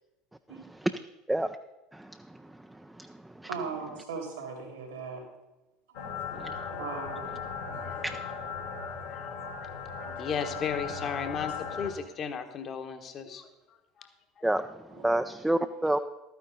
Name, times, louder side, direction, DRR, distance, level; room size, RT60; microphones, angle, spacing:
voice 1, 3.5-5.2 5.9-6.1 6.7-7.3 7.7-7.9 10.0-10.1 10.6-10.7 14.9-15.1 15.5-15.6, right 5 dB, 80° right, 1 dB, 3.3 m, -39 dB
sound 1, 5.9-11.9, left 5 dB, 70° left, 1.4 m, -37 dB
voice 2, 8.9-9.4 10.2-13.5, left 6 dB, 40° left, 8 dB, 1.2 m, -35 dB
voice 3, 14.4-14.7 15.0-16.0, right 1 dB, 5° right, 7 dB, 0.5 m, -28 dB
12.5 x 9.4 x 4.0 m, 1.0 s
hypercardioid pair, 70°, 0 cm